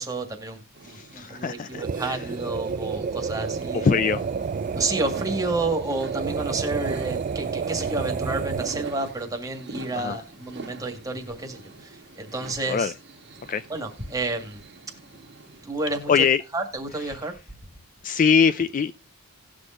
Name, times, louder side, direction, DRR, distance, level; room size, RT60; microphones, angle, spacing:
voice 1, 0.0-3.9 4.7-12.9 13.7-14.6 15.6-16.2 16.5-17.3, right 2 dB, 15° right, 3 dB, 1.7 m, -30 dB
sound 1, 0.7-15.7, right 3 dB, 50° right, 1.3 m, -45 dB
voice 2, 0.8-2.2 3.8-4.2 9.9-10.2 12.7-12.9 13.5-13.7 16.1-16.4 18.0-18.9, left 6 dB, 35° left, 14 dB, 0.3 m, -22 dB
sound 2, 1.7-9.1, right 5 dB, 35° right, 0.3 m, -30 dB
18.0 x 6.3 x 2.5 m, 0.31 s
head